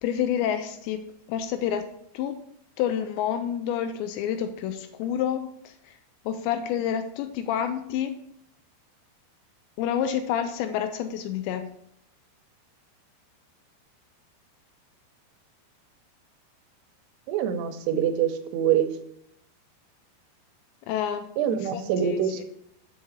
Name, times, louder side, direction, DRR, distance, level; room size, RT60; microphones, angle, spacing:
voice 1, 0.0-1.0 1.3-1.8 2.1-2.4 2.8-5.9 6.3-8.2 9.8-11.7 20.9-22.4, left 9 dB, 85° left, 8 dB, 2.8 m, -29 dB
voice 2, 17.3-18.9 21.4-22.4, right 9 dB, 80° right, 8 dB, 2.7 m, -25 dB
6.5 x 5.5 x 7.1 m, 0.73 s
omnidirectional pair, 5.1 m